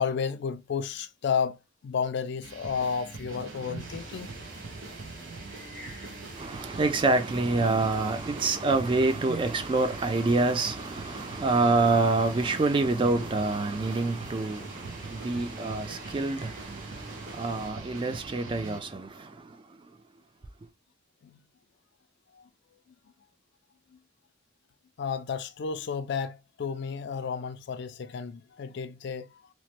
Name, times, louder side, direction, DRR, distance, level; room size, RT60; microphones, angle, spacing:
voice 1, 0.0-1.6 1.8-4.3 21.2-21.4 25.0-29.3, left 6 dB, 60° left, 0.4 m, -32 dB
sound 1, 2.4-18.8, right 3 dB, 80° right, 0.7 m, -43 dB
sound 2, 3.8-17.7, right 1 dB, 45° right, 1.0 m, -45 dB
voice 2, 6.4-14.7 15.1-16.5 17.4-19.1, right 3 dB, 25° right, 0.3 m, -26 dB
3.0 x 2.1 x 2.9 m
head